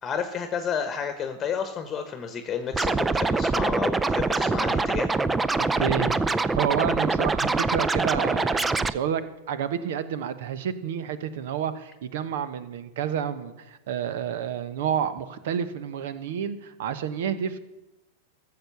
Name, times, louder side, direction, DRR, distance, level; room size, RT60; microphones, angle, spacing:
voice 1, 0.0-5.1, left 7 dB, 25° left, 8 dB, 1.1 m, -31 dB
Scratching (performance technique), 2.7-8.9, right 3 dB, 15° right, 0.5 m, -24 dB
voice 2, 5.8-17.6, right 8 dB, 65° right, 13 dB, 1.0 m, -30 dB
14.5 x 6.8 x 6.9 m, 1.0 s
hypercardioid pair, 100°, 0 cm